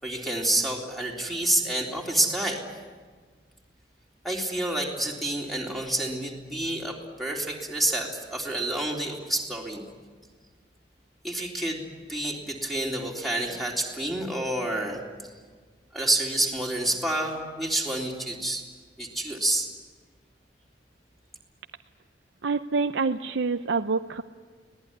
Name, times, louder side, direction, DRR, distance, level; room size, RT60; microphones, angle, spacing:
voice 1, 0.0-2.6 4.2-9.8 11.2-11.8 12.1-15.0 15.9-18.6 19.0-19.7, right 1 dB, ahead, -1 dB, 3.6 m, -28 dB
voice 2, 22.4-24.2, right 4 dB, 85° right, 7 dB, 0.6 m, -26 dB
25.5 x 18.5 x 9.8 m, 1.5 s
head